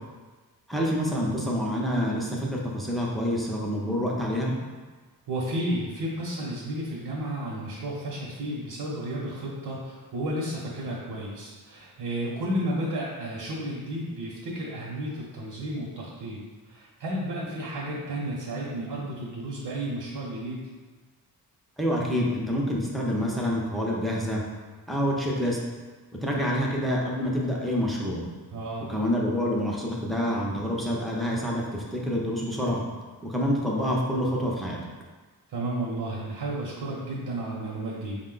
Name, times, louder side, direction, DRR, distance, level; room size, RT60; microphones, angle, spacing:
voice 1, 0.7-4.5 21.8-24.4 24.9-25.6 26.2-28.2 28.9-32.8 33.2-34.8, equal, ahead, -3 dB, 0.5 m, -27 dB
voice 2, 5.3-20.7 28.5-28.9 35.5-38.2, right 1 dB, 70° right, -5 dB, 0.8 m, -32 dB
5.1 x 2.2 x 3.8 m, 1.3 s
wide cardioid pair, 160°, 39 cm